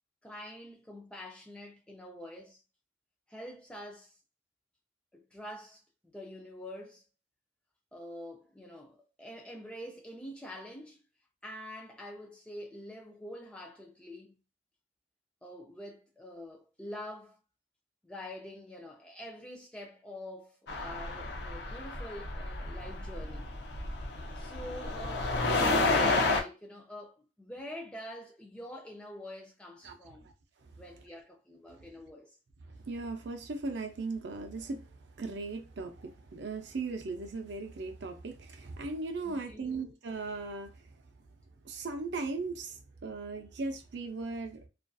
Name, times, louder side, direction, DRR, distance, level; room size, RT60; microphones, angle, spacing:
voice 1, 0.2-2.6 3.3-4.1 5.1-5.8 6.1-7.0 7.9-11.0 11.4-14.3 15.4-17.4 18.0-23.5 24.4-30.3 30.8-32.3 39.2-39.9, equal, 5° left, 0.4 m, -46 dB
sound 1, 20.7-26.4, left 3 dB, 65° left, 0.5 m, -31 dB
voice 2, 32.9-34.9 35.2-40.7 41.6-44.7, right 3 dB, 70° right, 0.5 m, -38 dB
2.5 x 2.4 x 2.3 m
head